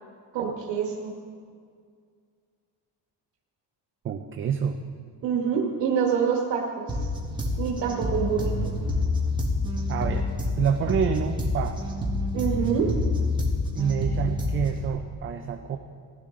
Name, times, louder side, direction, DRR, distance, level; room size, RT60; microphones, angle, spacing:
voice 1, 0.3-1.1 5.2-6.6 6.9-7.0 7.6-8.5 12.3-12.9, right 7 dB, 85° right, -1 dB, 1.5 m, -26 dB
voice 2, 4.0-4.8 9.9-10.3 10.6-11.8 13.8-15.8, right 7 dB, 30° right, 5 dB, 0.4 m, -27 dB
sound 1, 6.9-14.9, left 2 dB, 10° right, 1.4 m, -28 dB
16.0 x 12.0 x 3.8 m, 2.1 s
cardioid pair, 175°, 41 cm